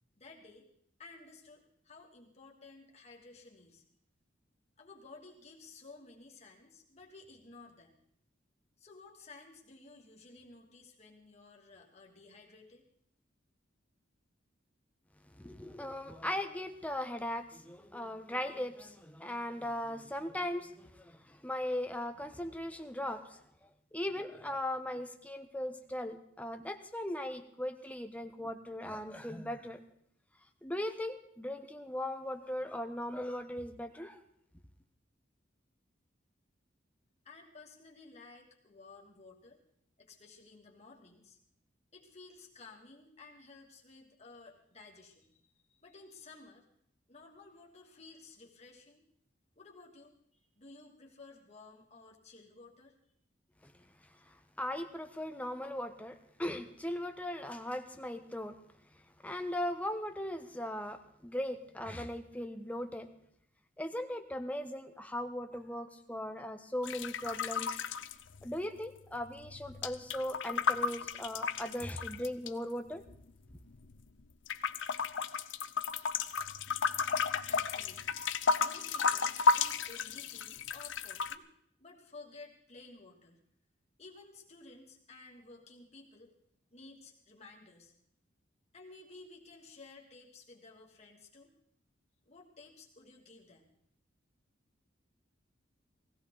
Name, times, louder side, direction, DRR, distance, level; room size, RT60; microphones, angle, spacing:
voice 1, 0.2-0.6 1.0-3.8 4.8-8.0 8.8-12.8 37.2-39.6 40.0-41.4 41.9-45.4 45.7-46.6 47.1-49.0 49.6-52.9 77.4-78.2 78.6-81.5 81.8-83.4 84.0-86.3 86.7-87.9 88.7-91.5 92.2-93.7, left 3 dB, 35° left, -1 dB, 2.6 m, -55 dB
voice 2, 15.4-23.4 23.9-29.8 30.6-34.2 53.6-53.7 54.3-58.6 59.2-63.1 63.8-67.8 68.4-73.0, left 1 dB, 10° left, 6 dB, 1.1 m, -38 dB
sound 1, 66.8-68.9 69.1-72.5 73.1-74.1 74.5-81.4, left 5 dB, 80° left, 0.7 m, -33 dB
19.5 x 16.5 x 4.0 m, 0.70 s
head